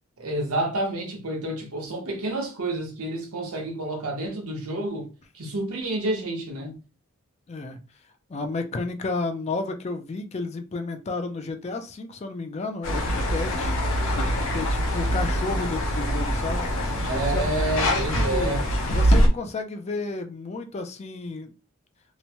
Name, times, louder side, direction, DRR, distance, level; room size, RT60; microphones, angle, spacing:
voice 1, 0.2-5.1 5.3-6.8 17.0-18.6, right 1 dB, 80° right, 0.9 m, -29 dB
voice 2, 7.5-7.8 8.3-13.7 14.3-16.7 17.3-17.5 17.9-18.6 18.9-21.5, left 3 dB, 30° left, 0.3 m, -32 dB
sound 1, 12.8-19.3, equal, 65° left, 0.8 m, -24 dB
2.9 x 2.1 x 2.7 m
head